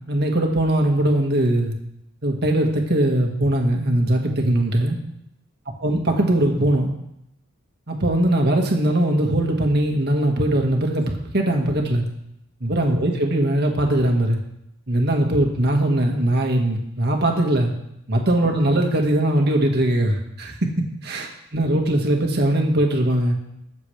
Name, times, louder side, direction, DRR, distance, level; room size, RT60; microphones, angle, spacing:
voice 1, 0.1-1.7 2.2-5.0 5.8-6.9 7.9-12.0 12.6-14.4 14.9-17.7 18.1-20.7 21.0-23.3, right 1 dB, 50° right, 2 dB, 1.8 m, -20 dB
21.0 x 7.4 x 3.4 m, 0.80 s
head